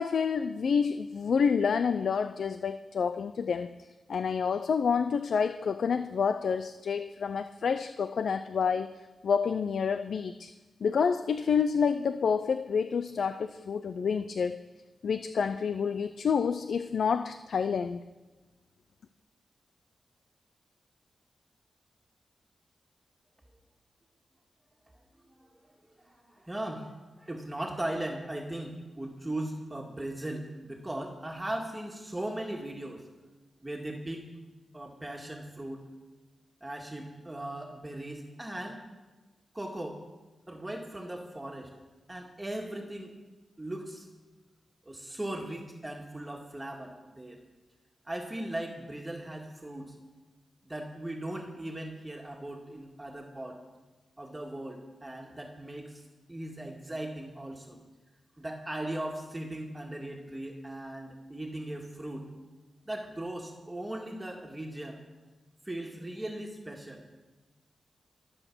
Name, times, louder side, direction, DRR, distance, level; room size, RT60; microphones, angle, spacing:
voice 1, 0.0-3.7 4.1-8.9 9.2-10.5 10.8-14.6 15.0-18.0, left 6 dB, 75° left, 11 dB, 0.5 m, -28 dB
voice 2, 25.3-25.7 26.0-33.0 33.6-34.2 34.7-35.8 36.6-38.8 39.5-40.0 40.5-41.7 42.1-43.1 43.6-44.1 44.9-47.4 48.1-49.9 50.6-53.6 54.2-56.0 56.3-57.8 58.4-62.3 62.9-65.0 65.7-67.0, right 1 dB, 15° right, 0 dB, 2.0 m, -38 dB
23.5 x 7.9 x 6.2 m, 1.2 s
cardioid pair, 80°, 0 cm